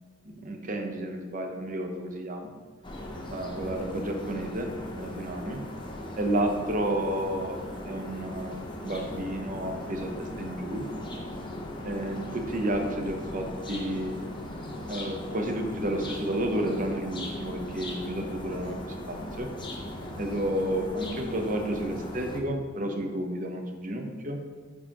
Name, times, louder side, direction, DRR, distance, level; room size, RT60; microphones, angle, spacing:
voice 1, 0.4-2.5 3.3-4.7 5.0-5.6 6.2-7.6 7.8-10.9 11.8-14.2 14.9-18.8 19.1-19.5 20.2-24.4, right 1 dB, 40° right, 4 dB, 0.8 m, -31 dB
sound 1, 2.8-22.4, left 1 dB, 25° left, 0.8 m, -38 dB
9.6 x 4.7 x 2.9 m, 1.5 s
head